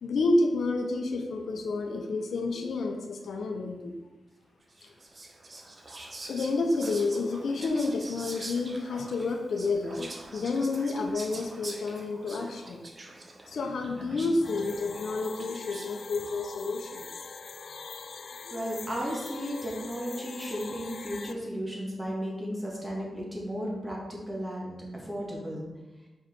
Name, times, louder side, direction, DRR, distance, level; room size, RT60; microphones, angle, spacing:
voice 1, 0.0-3.9 6.3-12.8 13.4-17.1 18.4-18.6, left 3 dB, 75° left, 4 dB, 0.9 m, -30 dB
Whispering, 4.7-16.0, right 2 dB, 35° right, 0.9 m, -45 dB
sound 1, 14.4-21.3, left 5 dB, 55° left, 0.4 m, -42 dB
voice 2, 18.5-25.7, equal, 15° right, -3 dB, 1.9 m, -34 dB
5.7 x 5.0 x 4.6 m, 1.1 s
wide cardioid pair, 120°, 0 cm